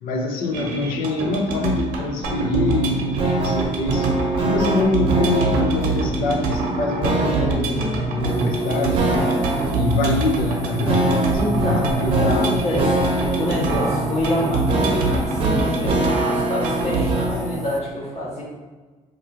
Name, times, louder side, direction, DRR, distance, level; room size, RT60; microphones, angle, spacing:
voice 1, 0.0-4.1 4.4-9.3 9.7-12.9, left 2 dB, 80° left, 3 dB, 0.5 m, -25 dB
sound 1, 0.5-17.1, right 3 dB, 85° right, 0.8 m, -26 dB
sound 2, 2.2-17.5, right 2 dB, 40° right, 0.7 m, -24 dB
sound 3, 8.2-17.8, equal, ahead, 0.4 m, -34 dB
voice 2, 11.3-13.0 13.4-18.4, equal, 45° left, -5 dB, 1.3 m, -26 dB
2.9 x 2.5 x 4.2 m, 1.3 s
cardioid pair, 130°, 14 cm